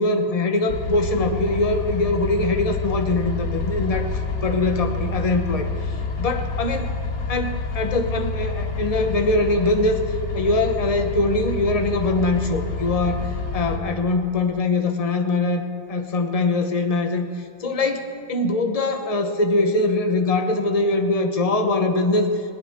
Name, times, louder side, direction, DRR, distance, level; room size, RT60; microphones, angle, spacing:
voice 1, 0.0-4.1 4.4-5.7 6.2-6.9 7.3-10.0 10.3-13.3 13.5-17.3 17.6-22.3, left 2 dB, 30° left, 5 dB, 0.7 m, -22 dB
sound 1, 0.7-13.8, left 3 dB, 50° left, 1.7 m, -28 dB
20.5 x 17.5 x 3.6 m, 2.5 s
omnidirectional pair, 2.1 m